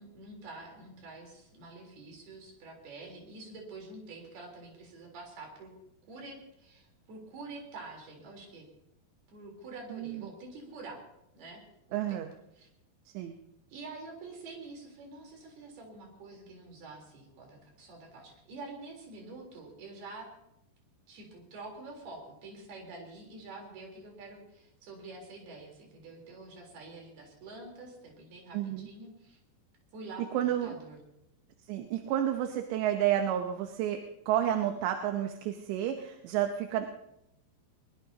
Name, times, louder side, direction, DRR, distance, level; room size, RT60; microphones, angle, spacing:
voice 1, 0.0-5.7 6.1-8.7 9.3-11.0 11.3-11.6 11.9-12.2 12.6-12.7 13.7-20.3 21.1-29.4 29.9-31.0, right 3 dB, 60° right, 1 dB, 5.7 m, -47 dB
voice 2, 9.9-10.3 11.9-12.3 13.1-13.4 28.5-28.9 30.3-30.8 31.7-36.9, right 11 dB, 85° right, 5 dB, 3.2 m, -30 dB
22.5 x 21.0 x 2.9 m, 0.82 s
omnidirectional pair, 5.0 m